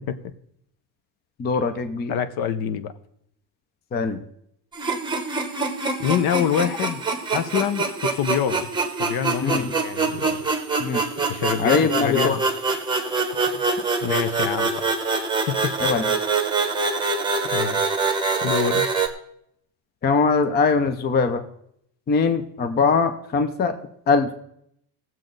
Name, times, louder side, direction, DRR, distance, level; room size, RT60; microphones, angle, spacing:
voice 1, 1.4-2.1 3.9-4.2 9.4-9.7 10.8-11.0 11.6-12.4 15.8-16.2 20.0-21.4 22.1-23.7 24.1-24.3, left 4 dB, 20° left, 8 dB, 0.5 m, -21 dB
voice 2, 2.1-2.9 6.0-7.0 7.3-8.7 9.0-10.4 11.3-12.4 14.0-14.9 15.5-15.6 17.5-17.8 18.4-18.9, left 8 dB, 55° left, 12 dB, 0.9 m, -26 dB
sound 1, 4.7-19.1, right 4 dB, 10° right, 1.0 m, -25 dB
18.5 x 7.6 x 3.9 m, 0.73 s
cardioid pair, 170°, 45 cm